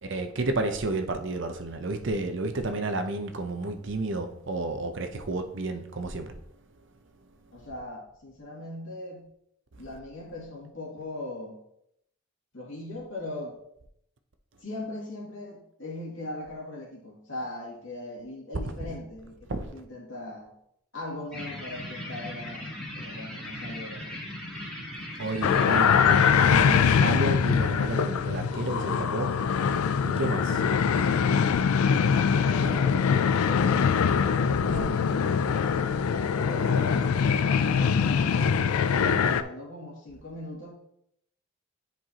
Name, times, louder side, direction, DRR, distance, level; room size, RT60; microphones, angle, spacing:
voice 1, 0.0-6.4 9.7-9.8 19.5-19.7 25.2-29.4 30.0-30.6 34.7-34.8, right 2 dB, 60° right, 0.7 m, -31 dB
voice 2, 7.5-9.3 9.8-11.6 12.5-13.6 14.6-20.5 20.9-24.1 32.2-36.0 36.3-37.2 37.6-40.7, left 1 dB, 65° left, 2.3 m, -39 dB
sound 1, 21.3-26.3, left 1 dB, ahead, 2.1 m, -38 dB
sound 2, 25.4-39.4, left 6 dB, 85° left, 0.4 m, -23 dB
9.9 x 4.6 x 2.9 m
head